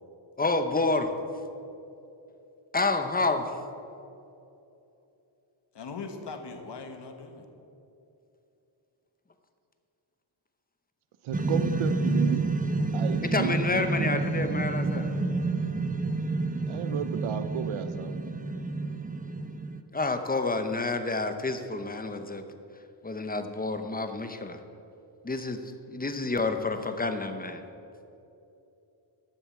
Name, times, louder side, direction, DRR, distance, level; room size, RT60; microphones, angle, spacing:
voice 1, 0.4-1.1 2.7-3.5 13.2-15.1 19.9-22.4 23.0-24.6 25.2-25.6 25.9-27.6, left 3 dB, 20° left, 8 dB, 0.8 m, -29 dB
voice 2, 5.7-7.5, left 4 dB, 60° left, 5 dB, 1.4 m, -40 dB
voice 3, 11.2-12.5 12.9-14.2 16.7-18.2, right 9 dB, 85° right, 11 dB, 0.7 m, -33 dB
sound 1, 11.3-19.8, right 3 dB, 20° right, 0.6 m, -29 dB
12.5 x 7.0 x 7.2 m, 2.8 s
wide cardioid pair, 120°, 47 cm